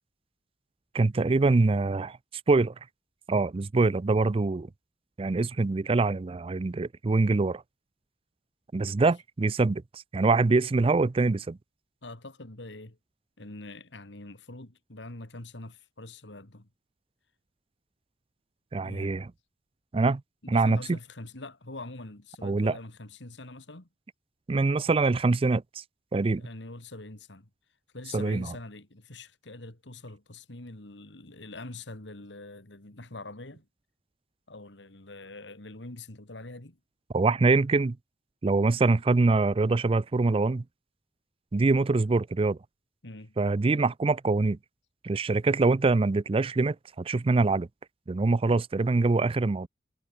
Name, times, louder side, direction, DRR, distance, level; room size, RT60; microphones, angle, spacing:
voice 1, 0.9-2.2 2.5-2.7 3.3-4.7 5.2-7.6 8.7-11.6 18.7-19.3 19.9-20.2 20.5-21.0 22.4-22.8 24.5-25.6 26.1-26.4 28.1-28.5 37.1-38.0 38.4-40.6 41.5-42.6 43.4-44.6 45.0-47.7 48.1-49.7, right 3 dB, 30° right, 0.4 m, -24 dB
voice 2, 12.0-13.0 13.4-16.7 18.8-19.2 20.4-23.9 26.3-27.5 27.9-33.7 34.5-36.8 43.0-43.3, left 2 dB, 85° left, 2.6 m, -44 dB
head